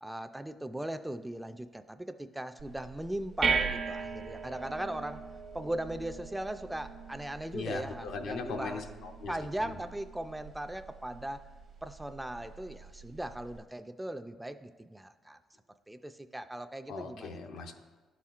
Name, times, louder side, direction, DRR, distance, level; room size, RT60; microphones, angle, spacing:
voice 1, 0.0-5.2 5.5-8.8 9.3-11.4 11.8-15.4 15.9-17.4, right 1 dB, 10° right, 9 dB, 0.3 m, -38 dB
sound 1, 2.6-13.6, right 5 dB, 55° right, 0.8 m, -39 dB
voice 2, 7.5-9.4 9.6-9.8 16.9-17.7, left 4 dB, 80° left, 4 dB, 0.6 m, -39 dB
11.0 x 4.3 x 2.4 m, 1.3 s
cardioid pair, 90°, 0 cm